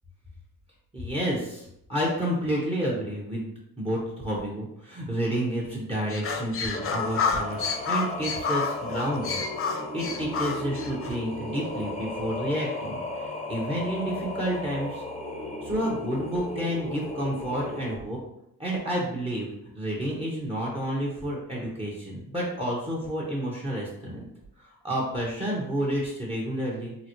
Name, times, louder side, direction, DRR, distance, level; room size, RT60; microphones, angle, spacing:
voice 1, 0.9-3.5 3.8-15.0 15.6-18.2 18.6-19.5 19.7-24.3 24.6-27.0, right 1 dB, 15° right, -4 dB, 1.0 m, -30 dB
sound 1, 6.1-11.2, left 5 dB, 40° left, 0.4 m, -30 dB
Singing, 6.7-18.0, left 2 dB, 15° left, 0.9 m, -35 dB
3.9 x 2.0 x 3.0 m, 0.78 s
supercardioid pair, 55°, 35 cm